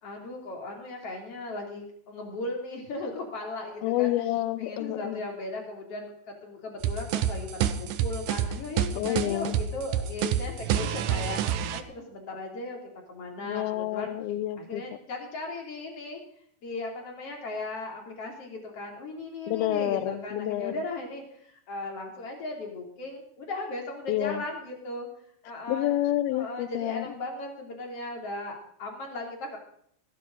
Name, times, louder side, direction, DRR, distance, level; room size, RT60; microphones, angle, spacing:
voice 1, 0.0-4.1 4.6-12.8 13.1-14.1 14.6-16.2 16.6-25.1 25.4-25.9 26.3-29.6, left 2 dB, 40° left, 1 dB, 3.4 m, -37 dB
voice 2, 3.8-5.2 9.0-9.6 13.4-14.8 19.5-20.8 24.1-24.4 25.7-27.1, left 14 dB, 75° left, 14 dB, 2.5 m, -29 dB
sound 1, 6.8-11.8, right 9 dB, 80° right, 1.9 m, -28 dB
17.5 x 15.0 x 3.8 m, 0.67 s
omnidirectional pair, 4.8 m